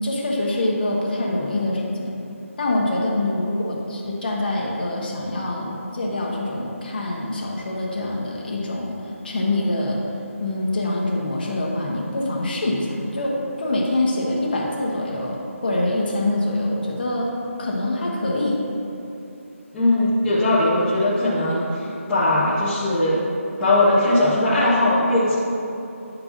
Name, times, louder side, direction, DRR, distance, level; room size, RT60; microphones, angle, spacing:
voice 1, 0.0-2.1 2.6-9.0 9.2-10.0 10.4-18.6, left 1 dB, 40° left, -3 dB, 1.1 m, -25 dB
voice 2, 19.7-23.2 23.6-25.3, left 1 dB, 5° left, -14 dB, 0.3 m, -19 dB
9.9 x 4.6 x 2.6 m, 2.8 s
figure-of-eight pair, 170°, 8 cm